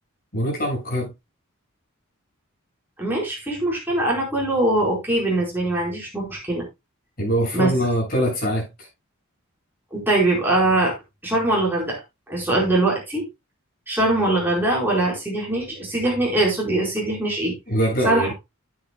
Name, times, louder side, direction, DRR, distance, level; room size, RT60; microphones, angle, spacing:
voice 1, 0.3-1.1 7.2-8.9 17.7-18.3, equal, 45° left, 7.1 m, -23 dB
voice 2, 3.0-6.6 7.5-7.7 9.9-10.9 11.2-12.0 12.3-13.2 13.9-17.5 18.0-18.3, right 2 dB, 10° right, 4.7 m, -22 dB
11.0 x 9.4 x 2.3 m
head